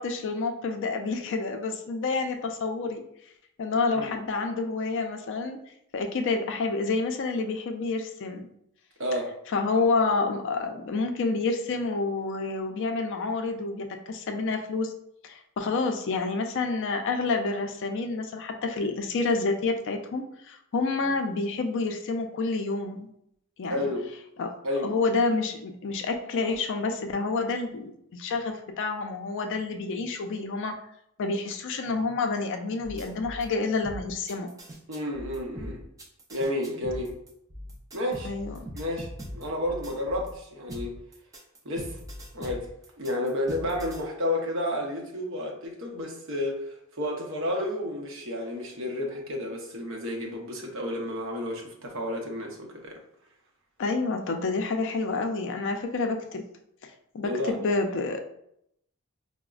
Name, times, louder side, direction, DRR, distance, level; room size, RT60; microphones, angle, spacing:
voice 1, 0.0-3.0 3.6-5.6 5.9-8.5 9.5-14.9 15.2-23.1 23.6-23.9 24.4-24.5 24.8-30.7 31.2-34.5 38.2-38.7 53.8-56.5 56.8-58.2, left 3 dB, 55° left, 4 dB, 0.4 m, -28 dB
voice 2, 9.0-9.3 23.7-24.1 24.6-24.9 34.9-35.8 36.3-37.1 37.9-38.3 38.7-40.9 41.6-42.0 42.3-42.7 43.0-53.0 57.2-57.6, left 1 dB, 60° right, 1 dB, 0.7 m, -31 dB
sound 1, 32.8-33.5 33.8-40.3 40.7-44.0, equal, 15° right, 0.4 m, -41 dB
4.8 x 2.0 x 2.3 m, 0.75 s
head